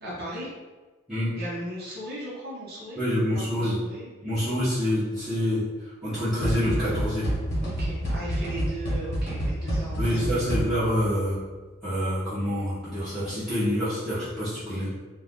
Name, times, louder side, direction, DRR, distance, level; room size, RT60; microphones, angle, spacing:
voice 1, 0.0-0.5 1.4-3.0 3.3-4.1 7.6-10.4 14.7-14.9, right 1 dB, 55° right, -6 dB, 0.9 m, -37 dB
voice 2, 3.0-3.8 4.2-5.6 6.0-7.3 9.9-11.4 11.8-14.9, equal, ahead, -17 dB, 0.9 m, -26 dB
sound 1, 6.4-11.0, right 1 dB, 65° left, 1.1 m, -28 dB
2.6 x 2.5 x 3.5 m, 1.3 s
head